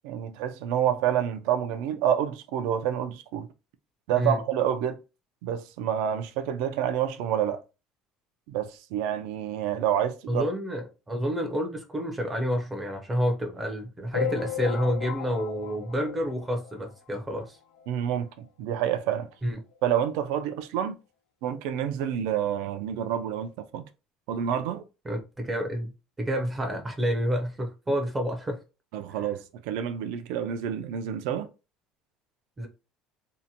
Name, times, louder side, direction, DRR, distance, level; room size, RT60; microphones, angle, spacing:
voice 1, 0.0-3.5 4.1-5.0 5.4-7.6 8.5-10.4 17.9-19.3 19.8-21.0 21.4-23.8 24.3-24.8 28.9-31.5, right 9 dB, 75° right, 0.3 m, -28 dB
voice 2, 10.3-17.6 19.4-19.6 25.1-25.9 26.2-28.6 29.1-29.2 32.6-32.7, equal, 10° right, 0.4 m, -29 dB
sound 1, 14.1-17.0 17.5-17.6 17.7-17.9 18.2-18.3 19.2-19.3 19.7-19.8, left 8 dB, 80° left, 0.4 m, -34 dB
2.7 x 2.1 x 2.6 m
cardioid pair, 170°, 0 cm